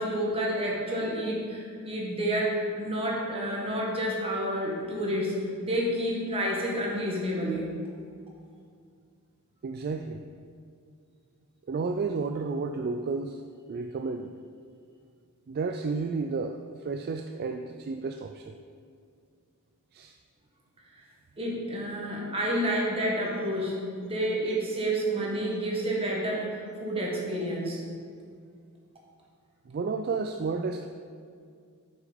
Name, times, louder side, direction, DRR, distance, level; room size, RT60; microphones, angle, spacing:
voice 1, 0.0-5.3 5.6-7.7 21.4-27.8, right 1 dB, 25° right, -3 dB, 1.7 m, -29 dB
voice 2, 9.6-10.2 11.7-13.4 13.7-14.3 15.5-18.6 19.9-20.2 29.7-30.9, right 4 dB, 45° right, 6 dB, 0.3 m, -32 dB
7.7 x 6.2 x 5.2 m, 2.3 s
head